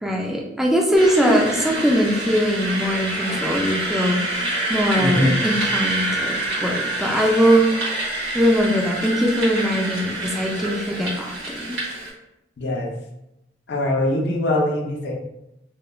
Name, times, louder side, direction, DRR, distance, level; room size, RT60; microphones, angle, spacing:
voice 1, 0.0-7.7 8.3-11.8, equal, ahead, -1 dB, 0.3 m, -21 dB
sound 1, 0.9-12.1, right 2 dB, 90° right, 1.2 m, -27 dB
voice 2, 5.0-5.4 12.6-12.9 13.7-15.1, left 1 dB, 60° left, 0 dB, 0.4 m, -22 dB
3.0 x 2.1 x 2.2 m, 0.88 s
head